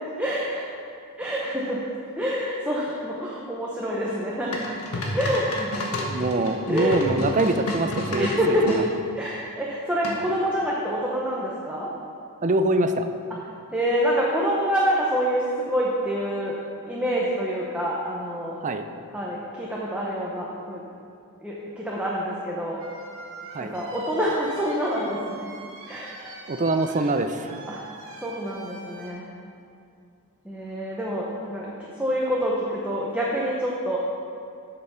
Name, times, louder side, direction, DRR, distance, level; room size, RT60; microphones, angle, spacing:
voice 1, 0.2-0.8 1.2-1.8 2.2-4.8 5.1-5.9 6.7-7.0 8.1-8.8 9.1-11.9 13.7-16.6 16.9-18.6 19.1-20.8 21.4-22.8 23.6-25.5 25.9-26.4 27.7-27.8 28.2-29.3 30.4-34.0, equal, 5° right, -5 dB, 0.9 m, -27 dB
sound 1, 4.5-8.8 10.0-10.5, left 1 dB, 80° left, 1.4 m, -30 dB
voice 2, 6.1-8.8 12.4-13.1 18.6-18.8 23.5-23.7 26.5-27.6, right 2 dB, 35° right, 8 dB, 0.5 m, -24 dB
sound 2, 22.8-29.1, right 3 dB, 60° right, 1.3 m, -43 dB
8.3 x 6.8 x 5.7 m, 2.4 s
head